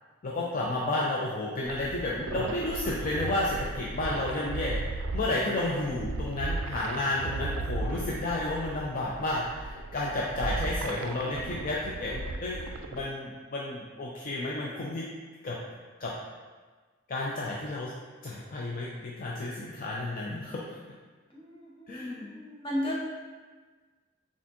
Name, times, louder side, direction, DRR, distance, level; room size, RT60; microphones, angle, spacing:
voice 1, 0.2-15.1 15.4-15.6 16.0-16.1 17.1-17.9 18.2-20.6 21.9-22.3, left 2 dB, 45° left, -4 dB, 0.4 m, -32 dB
sound 1, 1.6-13.0, right 3 dB, 80° right, 0.3 m, -36 dB
voice 2, 21.3-23.0, equal, 25° left, -5 dB, 0.9 m, -35 dB
4.2 x 3.6 x 2.8 m, 1.4 s
head